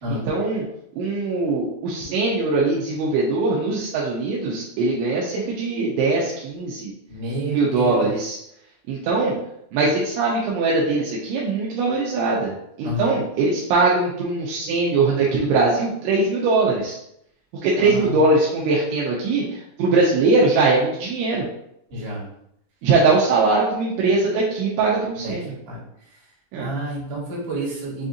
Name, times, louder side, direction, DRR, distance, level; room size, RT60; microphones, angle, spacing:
voice 1, 0.1-0.6 1.0-6.9 7.5-8.4 8.9-9.4 9.7-12.5 12.8-16.9 17.6-21.5 22.8-25.5 26.5-26.7, right 3 dB, 85° right, -4 dB, 2.7 m, -21 dB
voice 2, 7.1-8.1 12.8-13.2 17.8-18.2 21.9-22.2 25.2-25.3 25.7-25.8 26.6-28.1, right 1 dB, 60° right, -6 dB, 2.3 m, -29 dB
7.6 x 2.6 x 2.5 m, 0.76 s
omnidirectional pair, 5.9 m